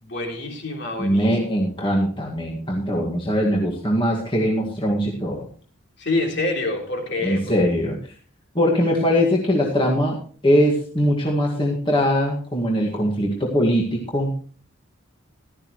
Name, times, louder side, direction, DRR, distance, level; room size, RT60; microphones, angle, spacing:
voice 1, 0.0-1.4 6.0-7.5, left 2 dB, 55° left, 1 dB, 3.6 m, -26 dB
voice 2, 1.0-5.5 7.2-8.0 8.6-10.2 10.4-14.3, equal, 25° left, -2 dB, 2.0 m, -21 dB
16.0 x 12.5 x 3.2 m, 0.43 s
head